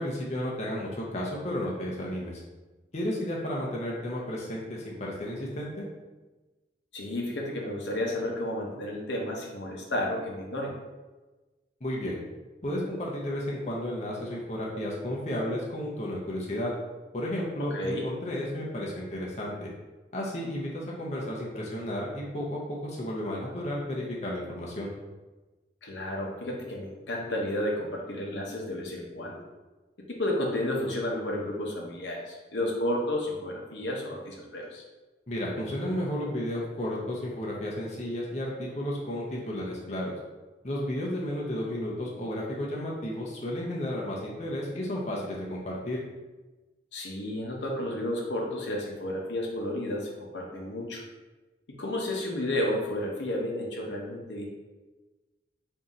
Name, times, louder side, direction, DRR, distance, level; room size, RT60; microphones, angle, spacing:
voice 1, 0.0-2.4 2.9-5.9 11.8-12.2 12.6-16.7 17.1-19.7 20.1-24.9 35.3-40.1 40.6-46.0, left 1 dB, 40° left, -4 dB, 0.6 m, -33 dB
voice 2, 6.9-10.7 17.6-18.1 25.8-29.4 30.0-34.8 46.9-51.0 51.7-54.4, left 1 dB, 80° left, -1 dB, 0.8 m, -32 dB
3.7 x 2.7 x 4.1 m, 1.2 s
head